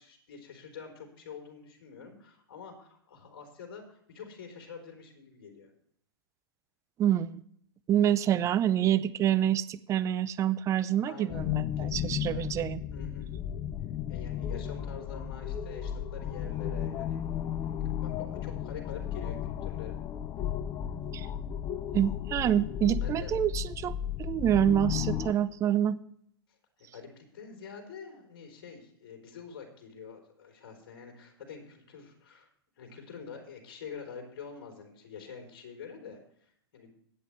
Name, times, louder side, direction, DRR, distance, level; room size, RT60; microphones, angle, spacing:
voice 1, 0.0-5.7 11.1-11.4 11.8-12.5 12.9-13.3 14.1-17.2 17.8-20.0 22.9-23.3 26.5-32.5 32.8-36.9, left 6 dB, 60° left, 2 dB, 3.9 m, -46 dB
voice 2, 7.0-7.4 7.9-12.8 21.1-21.3 21.9-26.0, right 10 dB, 25° right, 15 dB, 0.6 m, -27 dB
sound 1, 11.3-25.3, left 10 dB, 25° left, 0.6 m, -34 dB
21.5 x 8.5 x 3.3 m, 0.69 s
hypercardioid pair, 120°, 13 cm